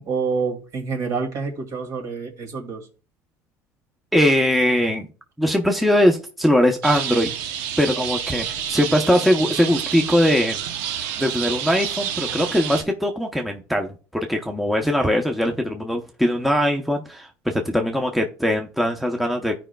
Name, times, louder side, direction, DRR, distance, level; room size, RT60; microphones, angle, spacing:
voice 1, 0.0-2.8, right 5 dB, 55° right, 2.3 m, -27 dB
voice 2, 4.1-5.1 5.4-7.3 7.8-10.6 11.0-13.9 14.3-19.5, equal, ahead, 0.8 m, -21 dB
sound 1, 6.8-12.8, right 9 dB, 85° right, 0.9 m, -29 dB
14.0 x 5.0 x 2.3 m
cardioid pair, 115°, 7 cm